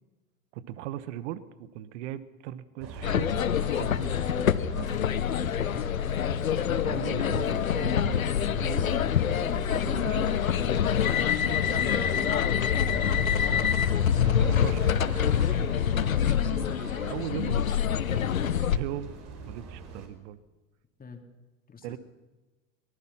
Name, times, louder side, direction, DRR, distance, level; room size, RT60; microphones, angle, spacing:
voice 1, 0.5-5.1 6.7-9.0 9.4-10.5 14.2-15.6 16.2-16.7 17.1-18.3 18.6-19.1 19.4-20.4 21.8-22.0, right 12 dB, 60° right, 15 dB, 1.4 m, -39 dB
sound 1, 2.8-20.1, right 4 dB, 40° right, 5.2 m, -41 dB
sound 2, 3.0-18.8, left 9 dB, 85° left, 0.8 m, -26 dB
voice 2, 13.4-14.0 15.4-16.2 21.0-21.2 21.7-22.0, left 4 dB, 20° left, 4 dB, 3.4 m, -45 dB
24.0 x 19.5 x 5.8 m, 1.2 s
figure-of-eight pair, 80°, 40 cm